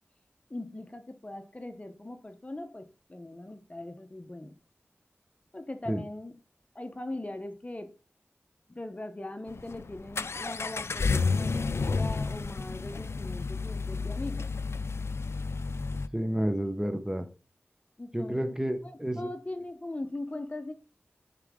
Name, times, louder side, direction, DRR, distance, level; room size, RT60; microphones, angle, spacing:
voice 1, 0.5-4.6 5.5-6.3 6.7-7.9 8.7-14.5 18.0-18.5 18.8-20.7, left 2 dB, 30° left, 0.8 m, -40 dB
Accelerating revving vroom, 9.5-16.1, left 4 dB, 80° left, 0.3 m, -31 dB
voice 2, 16.1-17.3 18.1-19.3, equal, 15° right, 0.9 m, -30 dB
9.6 x 4.1 x 3.7 m
wide cardioid pair, 50°, 4 cm